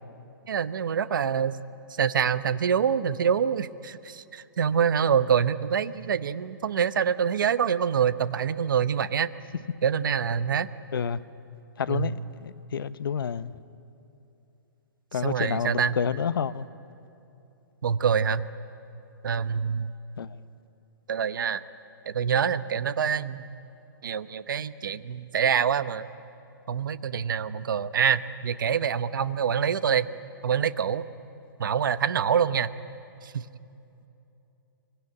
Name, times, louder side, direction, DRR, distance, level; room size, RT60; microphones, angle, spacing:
voice 1, 0.5-1.6 1.9-9.3 9.8-10.7 11.9-12.2 15.2-16.0 17.8-18.4 19.2-19.9 21.1-21.6 22.1-23.4 24.0-26.1 26.7-30.1 30.4-31.0 31.6-32.7 33.2-33.5, right 7 dB, 60° right, 13 dB, 0.9 m, -25 dB
voice 2, 10.9-11.2 11.8-12.1 12.4-13.5 15.1-16.7 20.2-20.4, left 7 dB, 75° left, 14 dB, 0.9 m, -29 dB
25.5 x 23.5 x 9.8 m, 2.8 s
hypercardioid pair, 175°, 12 cm